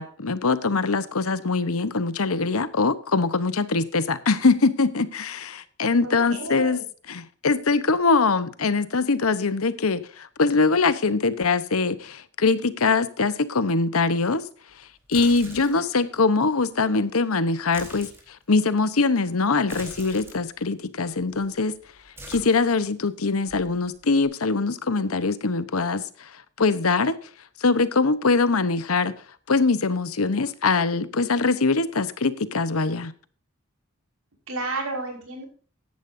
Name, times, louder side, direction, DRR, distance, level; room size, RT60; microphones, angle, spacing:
voice 1, 0.0-6.8 7.1-14.4 15.1-18.1 18.5-21.7 22.3-26.3 26.6-27.2 27.6-29.2 29.5-33.1, left 4 dB, 85° left, 15 dB, 1.0 m, -23 dB
voice 2, 6.0-6.8 15.5-15.8 34.5-35.4, right 2 dB, 85° right, 1 dB, 5.5 m, -32 dB
sound 1, 15.0-15.9 17.5-18.3 19.6-20.4 21.2-21.6 21.8-23.1 23.5-24.2, right 1 dB, 10° right, 4.2 m, -43 dB
15.0 x 11.0 x 2.7 m, 0.42 s
head